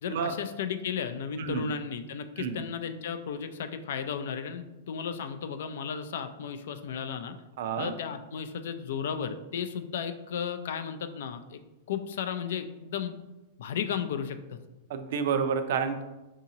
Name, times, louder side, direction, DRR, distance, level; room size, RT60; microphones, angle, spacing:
voice 1, 0.0-7.4 7.8-11.6 11.9-13.2 13.6-14.6, left 7 dB, 75° left, 9 dB, 0.3 m, -34 dB
voice 2, 7.6-7.9 14.9-16.0, right 6 dB, 70° right, 8 dB, 0.4 m, -29 dB
4.8 x 2.7 x 2.7 m, 1.0 s
supercardioid pair, 145°, 0 cm